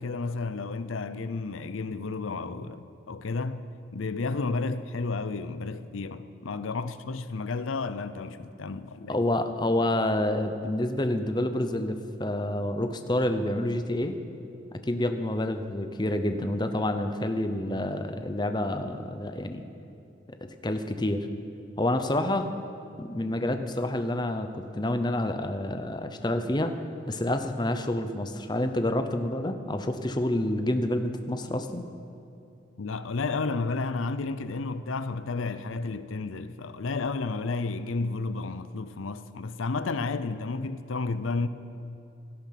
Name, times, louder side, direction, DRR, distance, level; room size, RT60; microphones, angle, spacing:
voice 1, 0.0-3.6 3.9-9.2 32.8-41.5, left 3 dB, 90° left, 0.6 m, -32 dB
voice 2, 9.1-14.1 14.7-19.6 20.4-21.3 21.8-22.5 23.0-26.7 27.1-31.9, left 1 dB, 20° left, 0.8 m, -28 dB
17.0 x 12.5 x 5.9 m
head